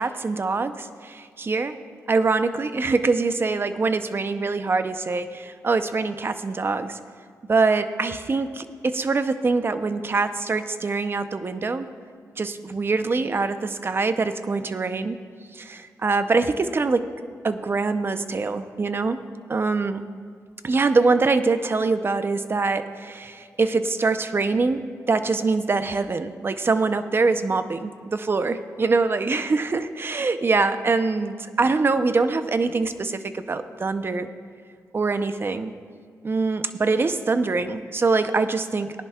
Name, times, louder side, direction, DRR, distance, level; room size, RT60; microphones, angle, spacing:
voice 1, 0.0-1.8 2.1-7.0 7.5-11.9 12.4-15.2 15.5-17.1 17.4-19.2 19.5-20.0 20.6-24.8 25.1-34.3 34.9-35.7 36.2-39.0, right 3 dB, 35° right, 10 dB, 0.7 m, -24 dB
18.5 x 10.5 x 2.4 m, 2.1 s
cardioid pair, 80°, 6 cm